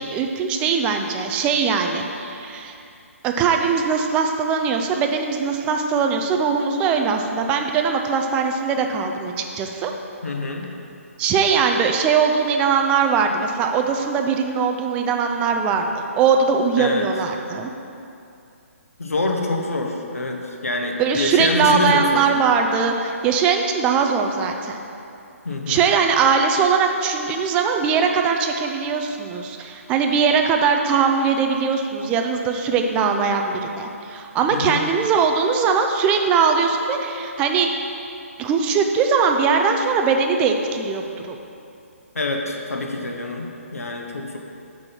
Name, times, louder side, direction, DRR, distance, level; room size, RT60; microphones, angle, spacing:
voice 1, 0.1-2.7 3.2-9.9 11.2-17.7 21.0-24.8 25.7-37.7 38.4-41.4, right 5 dB, 15° right, 4 dB, 0.3 m, -21 dB
voice 2, 10.2-10.7 16.8-17.1 19.0-22.3 25.4-25.9 34.5-34.8 42.1-43.5 43.7-44.4, left 2 dB, 75° left, 2 dB, 0.8 m, -25 dB
6.2 x 3.7 x 5.6 m, 2.6 s
figure-of-eight pair, 135°, 8 cm